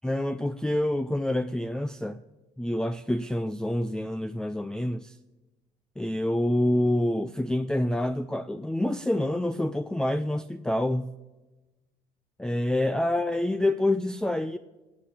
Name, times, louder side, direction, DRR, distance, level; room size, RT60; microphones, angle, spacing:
voice 1, 0.0-2.2 2.6-5.2 6.0-11.1 12.4-14.6, left 1 dB, 5° left, 0.5 m, -27 dB
18.0 x 8.3 x 8.6 m
cardioid pair, 110°, 17 cm